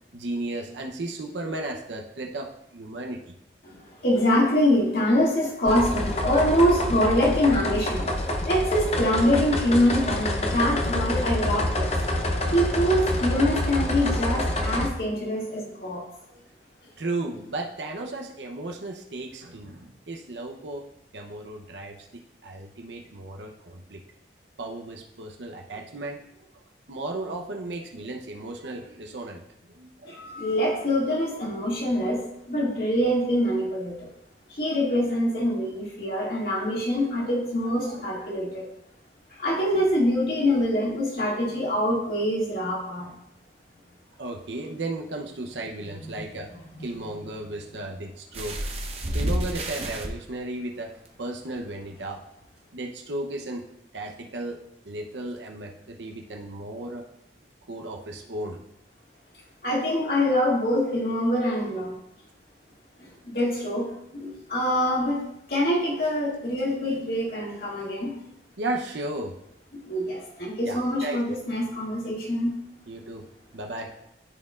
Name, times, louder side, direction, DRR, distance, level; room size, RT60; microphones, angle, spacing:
voice 1, 0.1-3.3 16.2-16.4 17.0-20.9 21.1-24.0 24.6-26.2 26.9-29.4 29.7-30.4 32.3-32.4 37.2-37.3 37.8-38.3 44.2-46.5 46.8-48.6 49.1-50.9 51.2-52.2 52.7-53.7 53.9-57.0 57.7-58.6 63.1-63.2 68.6-69.3 70.6-71.2 72.9-73.3 73.5-73.9, right 2 dB, 80° right, 2 dB, 0.8 m, -35 dB
voice 2, 3.6-8.1 8.4-11.9 12.5-16.0 30.0-32.2 32.5-34.1 34.5-38.7 39.3-43.1 46.0-46.2 59.6-61.9 63.0-63.9 64.1-65.2 65.5-68.1 69.7-72.5, equal, 55° left, -5 dB, 2.3 m, -24 dB
sound 1, 5.7-14.9, left 1 dB, 35° left, 0.7 m, -27 dB
sound 2, 48.3-50.1 51.0-51.1 51.6-51.7, right 1 dB, 35° right, 0.8 m, -29 dB
12.5 x 4.4 x 2.4 m, 0.78 s
head